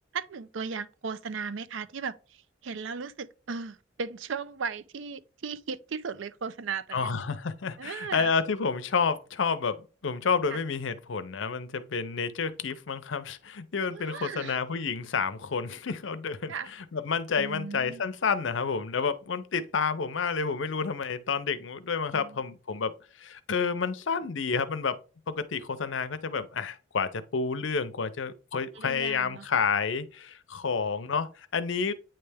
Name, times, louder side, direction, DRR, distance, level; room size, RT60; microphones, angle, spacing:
voice 1, 0.1-7.1 7.8-8.3 10.5-10.6 13.9-14.6 16.5-16.7 17.4-18.0 22.1-22.4 28.7-29.5, right 5 dB, 80° right, 0.5 m, -36 dB
voice 2, 6.9-25.0 25.3-31.9, left 5 dB, 75° left, 0.6 m, -30 dB
8.8 x 3.3 x 3.4 m
head